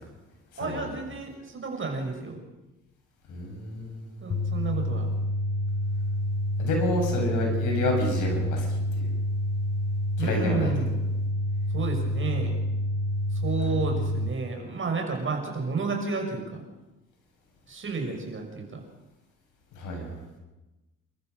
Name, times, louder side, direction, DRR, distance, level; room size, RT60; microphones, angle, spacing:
voice 1, 0.6-2.4 4.2-5.1 10.2-11.0 11.7-12.6 13.3-16.6 17.7-18.8, right 4 dB, 40° right, 3 dB, 6.3 m, -31 dB
voice 2, 3.3-4.2 6.6-9.1 10.2-10.7 13.6-13.8 19.7-20.2, left 1 dB, 85° left, 0 dB, 7.8 m, -30 dB
sound 1, 4.3-14.3, left 1 dB, 35° left, 1.1 m, -28 dB
28.5 x 14.0 x 6.7 m, 1.1 s
cardioid pair, 90°, 30 cm